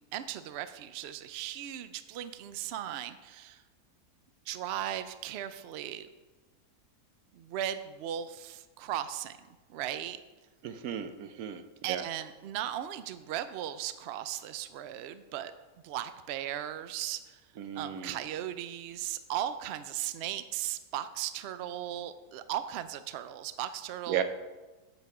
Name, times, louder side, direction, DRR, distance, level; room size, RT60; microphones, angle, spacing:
voice 1, 0.0-3.6 4.5-6.1 7.3-10.2 11.8-15.5 15.8-17.4 17.7-24.2, right 11 dB, 85° right, 11 dB, 0.5 m, -37 dB
voice 2, 10.6-12.0 17.6-18.2 24.1-24.2, right 9 dB, 70° right, 9 dB, 1.1 m, -35 dB
8.1 x 6.8 x 4.8 m, 1.2 s
omnidirectional pair, 1.7 m